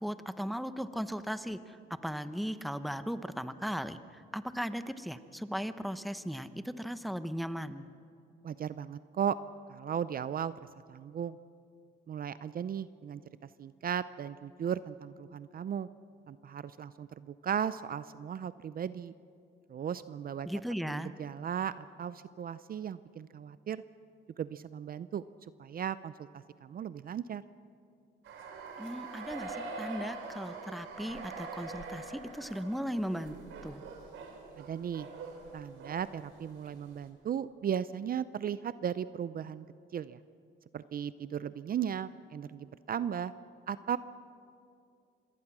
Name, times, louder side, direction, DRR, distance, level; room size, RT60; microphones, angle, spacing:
voice 1, 0.0-1.8 2.0-7.9 20.4-21.1 28.8-33.4 33.6-33.8, equal, ahead, 11 dB, 0.9 m, -37 dB
voice 2, 8.4-9.4 9.7-10.5 10.9-11.4 12.1-13.2 13.6-15.9 16.3-19.1 19.7-20.5 20.9-23.8 24.4-25.2 25.6-27.4 34.6-35.1 35.5-39.7 39.9-40.2 40.7-43.3 43.7-44.0, right 8 dB, 50° right, 15 dB, 0.5 m, -36 dB
sound 1, 28.2-36.7, right 3 dB, 80° right, 3.5 m, -44 dB
26.0 x 18.5 x 6.1 m, 2.5 s
cardioid pair, 90°, 20 cm